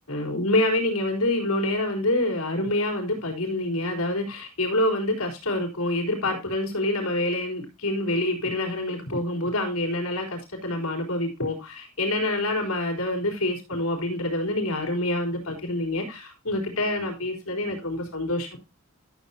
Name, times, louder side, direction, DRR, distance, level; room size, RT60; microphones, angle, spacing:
voice 1, 0.1-18.6, left 1 dB, 80° left, 3.9 m, -26 dB
13.0 x 7.4 x 2.8 m
head